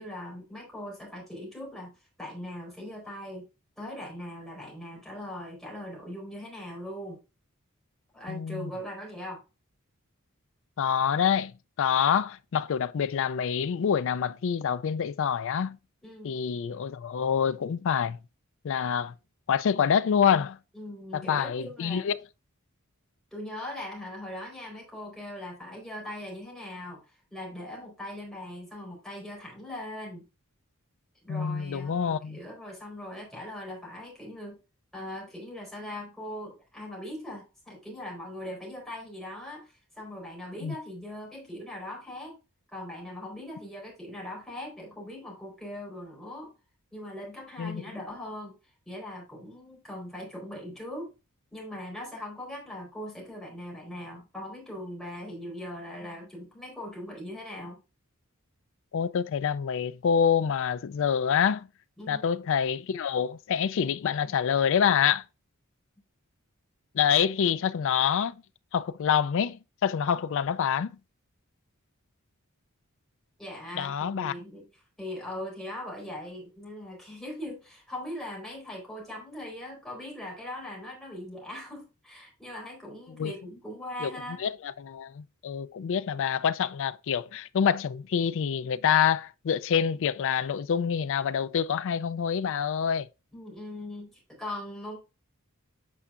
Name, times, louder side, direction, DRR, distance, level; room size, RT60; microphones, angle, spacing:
voice 1, 0.0-1.9 2.2-3.5 3.8-7.2 8.1-9.4 16.0-16.4 20.7-22.1 23.3-30.3 31.2-34.6 34.9-42.4 42.7-46.5 46.9-48.6 48.8-51.1 51.5-57.8 62.0-62.3 73.4-74.7 75.0-84.4 93.3-95.0, left 1 dB, ahead, 4.2 m, -40 dB
voice 2, 8.3-8.7 10.8-11.5 11.8-15.8 16.2-18.2 18.6-19.1 19.5-20.6 21.1-22.2 31.3-32.4 40.6-40.7 47.6-47.8 58.9-61.7 62.1-65.2 66.9-68.4 68.7-71.0 73.7-74.3 83.2-83.3 84.0-84.1 84.4-93.1, left 7 dB, 65° left, 0.4 m, -26 dB
8.5 x 5.5 x 2.4 m
head